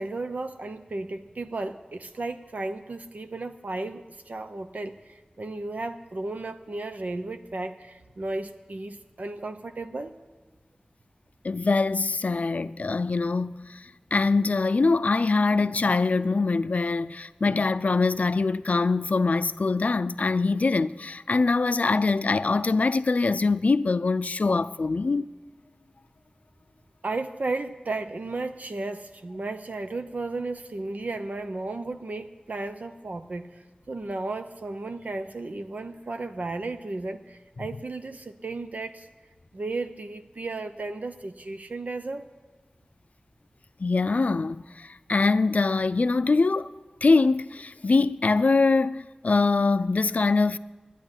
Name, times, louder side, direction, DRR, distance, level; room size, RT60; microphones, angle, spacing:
voice 1, 0.0-10.2 27.0-33.5 33.9-39.1 39.5-42.3, right 2 dB, 75° right, 0.8 m, -34 dB
voice 2, 11.4-25.2 43.8-46.7 47.0-50.6, left 3 dB, 70° left, 0.4 m, -23 dB
11.5 x 9.8 x 9.8 m
wide cardioid pair, 65°, 3 cm